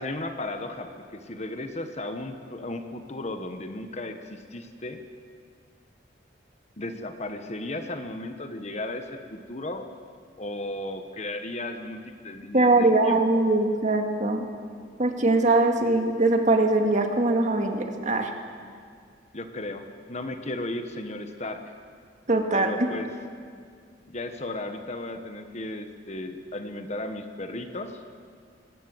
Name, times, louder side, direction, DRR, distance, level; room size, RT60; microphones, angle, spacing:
voice 1, 0.0-5.0 6.8-9.9 10.4-13.4 19.3-21.8 22.5-23.1 24.1-27.9, left 2 dB, 35° left, 7 dB, 1.2 m, -35 dB
voice 2, 12.5-14.5 15.0-18.3 22.3-22.9, right 2 dB, 40° right, 4 dB, 1.9 m, -22 dB
21.0 x 18.0 x 7.8 m, 2.1 s
head